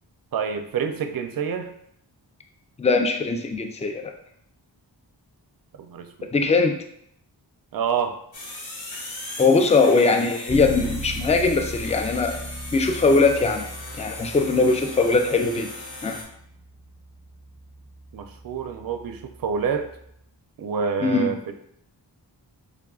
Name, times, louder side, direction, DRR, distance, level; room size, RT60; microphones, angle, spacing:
voice 1, 0.3-1.7 5.8-6.3 7.7-8.2 18.1-19.9 20.6-21.5, right 6 dB, 55° right, 7 dB, 0.5 m, -27 dB
voice 2, 2.8-4.0 6.3-6.7 9.4-12.4 12.7-13.7 14.0-15.7 16.0-16.2 21.0-21.3, left 3 dB, 15° left, 4 dB, 0.4 m, -20 dB
sound 1, 8.3-16.2, left 2 dB, 85° left, 1.0 m, -38 dB
Bass guitar, 10.5-20.3, right 1 dB, 15° right, 0.7 m, -39 dB
3.6 x 3.3 x 2.3 m, 0.71 s
wide cardioid pair, 50°, 44 cm